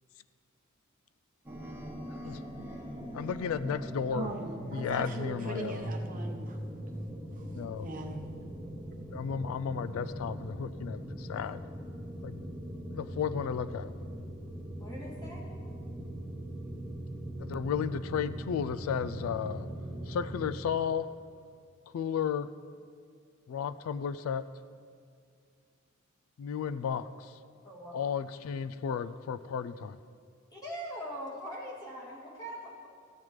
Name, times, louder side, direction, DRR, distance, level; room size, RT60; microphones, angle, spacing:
sound 1, 1.5-20.5, right 1 dB, 10° right, 1.2 m, -40 dB
voice 1, 3.1-4.3 4.7-5.9 7.5-7.9 9.1-11.6 12.2-12.4 12.9-13.9 17.4-19.7 20.1-21.1 21.9-22.5 23.5-24.5 26.4-27.4 27.9-30.0, left 7 dB, 90° left, 15 dB, 0.3 m, -33 dB
voice 2, 4.1-6.6 7.3-8.2, right 2 dB, 40° right, 2 dB, 0.8 m, -40 dB
voice 3, 14.8-15.4 27.6-28.1 30.5-32.9, equal, 20° left, -6 dB, 2.4 m, -42 dB
15.0 x 8.9 x 3.2 m, 2.2 s
head